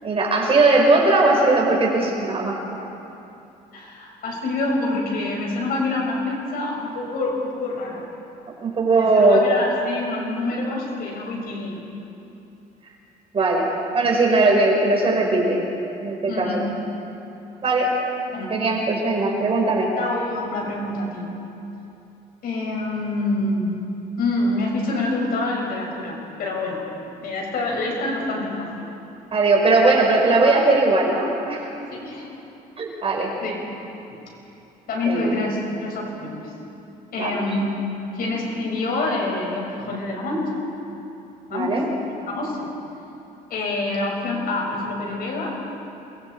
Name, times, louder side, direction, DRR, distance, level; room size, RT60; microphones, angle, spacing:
voice 1, 0.0-2.6 8.6-9.4 13.3-13.7 13.9-15.6 16.0-16.6 17.6-18.0 18.5-19.9 29.3-31.7 32.8-33.3 35.0-35.3 37.2-37.4 41.5-41.8, right 2 dB, 35° right, -1 dB, 5.0 m, -19 dB
voice 2, 3.7-8.1 9.0-11.8 16.3-16.7 18.3-18.5 19.2-19.4 20.0-21.3 22.4-23.8 24.2-26.8 27.2-28.9 31.9-32.3 33.4-33.6 34.9-36.5 37.1-40.6 41.5-41.8 42.3-42.7 43.5-45.5, left 2 dB, 60° left, -1 dB, 6.5 m, -26 dB
28.5 x 22.5 x 4.7 m, 2.9 s
cardioid pair, 110°, 17 cm